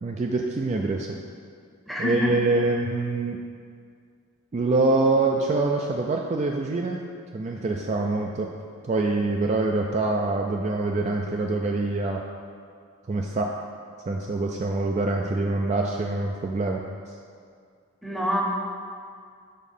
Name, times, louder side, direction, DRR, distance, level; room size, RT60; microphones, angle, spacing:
voice 1, 0.0-1.1 2.0-3.4 4.5-7.0 7.3-8.5 8.8-12.2 13.1-13.5 14.1-16.9, right 3 dB, 35° right, 1 dB, 0.3 m, -25 dB
voice 2, 1.9-2.3 18.0-18.4, left 1 dB, ahead, -3 dB, 0.7 m, -25 dB
6.5 x 3.6 x 5.4 m, 2.2 s
head